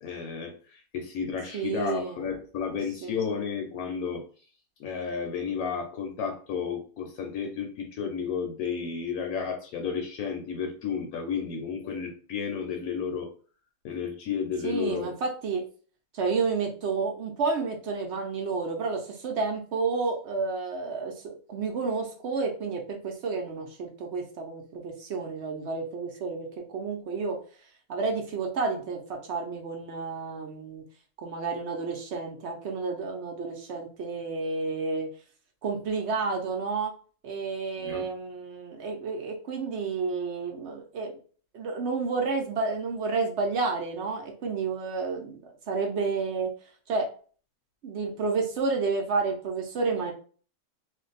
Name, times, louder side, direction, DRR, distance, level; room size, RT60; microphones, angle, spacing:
voice 1, 0.0-4.2 4.8-13.3 13.8-15.1 37.8-38.1, left 6 dB, 80° left, 3 dB, 1.0 m, -32 dB
voice 2, 1.5-2.3 2.7-3.3 14.6-15.6 16.1-27.4 27.9-30.8 31.2-35.1 35.6-36.9 37.2-41.1 41.5-46.5 46.9-47.1 47.8-50.1, right 4 dB, 60° right, 2 dB, 0.7 m, -30 dB
2.5 x 2.2 x 3.9 m, 0.41 s
omnidirectional pair, 1.6 m